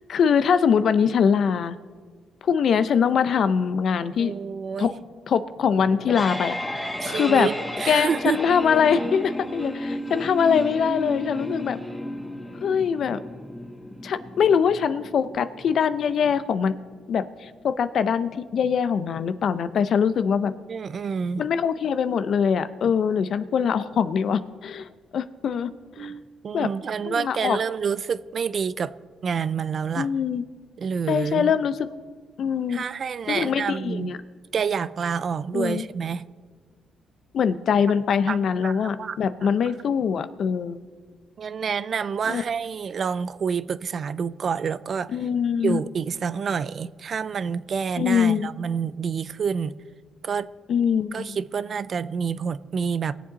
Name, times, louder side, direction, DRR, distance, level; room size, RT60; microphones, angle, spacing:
voice 1, 0.1-1.8 2.4-4.3 4.8-4.9 5.3-6.8 7.1-7.5 7.9-11.8 12.6-13.2 14.0-16.7 17.1-20.5 21.4-25.7 26.0-26.1 26.5-26.7 27.1-27.6 30.0-30.4 31.1-31.8 32.4-32.8 33.3-34.2 35.5-35.8 37.3-40.8 42.3-42.4 45.1-45.8 48.0-48.5 50.7-51.4, left 7 dB, 60° left, 0.6 m, -23 dB
voice 2, 4.2-5.0 7.0-8.4 20.7-21.4 26.0-28.9 29.2-30.1 30.8-31.5 32.7-34.1 34.5-36.2 38.3-39.5 41.4-45.2 45.6-49.8 50.2-50.5 51.1-53.1, right 6 dB, 50° right, 0.4 m, -28 dB
sound 1, 5.8-16.8, left 1 dB, 10° left, 1.5 m, -33 dB
20.0 x 7.4 x 4.0 m
cardioid pair, 90°, 0 cm